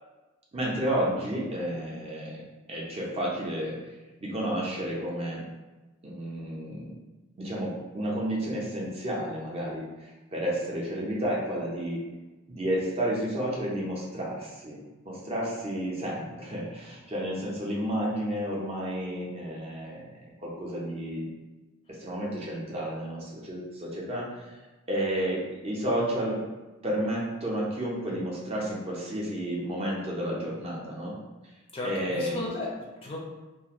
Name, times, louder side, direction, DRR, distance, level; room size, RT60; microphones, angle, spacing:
voice 1, 0.5-2.4 2.7-3.8 4.2-5.4 6.0-6.9 7.4-12.0 12.5-14.8 15.0-20.1 20.4-21.3 21.9-24.5 24.9-26.4 26.8-31.1 31.8-32.4, right 1 dB, 30° right, -4 dB, 0.6 m, -31 dB
voice 2, 31.7-33.2, left 1 dB, 25° left, -3 dB, 0.4 m, -35 dB
2.4 x 2.4 x 2.9 m, 1.2 s
head